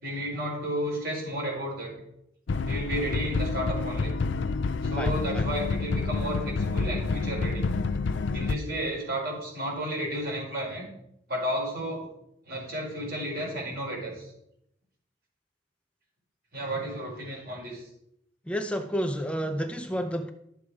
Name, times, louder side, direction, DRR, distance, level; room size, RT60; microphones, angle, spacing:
voice 1, 0.0-1.9 2.6-4.2 4.8-7.6 8.3-10.9 11.3-12.0 12.5-14.3 16.5-17.8, equal, 60° right, -2 dB, 4.7 m, -32 dB
sound 1, 2.5-8.6, left 4 dB, 80° left, 0.5 m, -28 dB
voice 2, 5.0-5.5 18.5-20.3, equal, 5° left, 6 dB, 0.6 m, -30 dB
12.5 x 7.1 x 4.9 m, 0.78 s
head